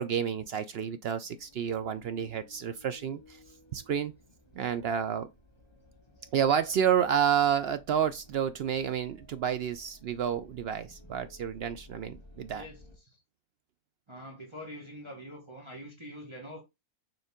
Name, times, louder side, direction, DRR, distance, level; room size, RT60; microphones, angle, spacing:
voice 1, 0.0-3.4 3.7-4.1 4.6-5.3 6.3-12.6, right 8 dB, 70° right, 0.5 m, -30 dB
sound 1, 1.3-13.0, left 1 dB, 15° left, 1.9 m, -56 dB
voice 2, 12.5-13.2 14.1-16.6, equal, 20° right, 1.6 m, -45 dB
7.0 x 3.9 x 3.6 m
omnidirectional pair, 1.6 m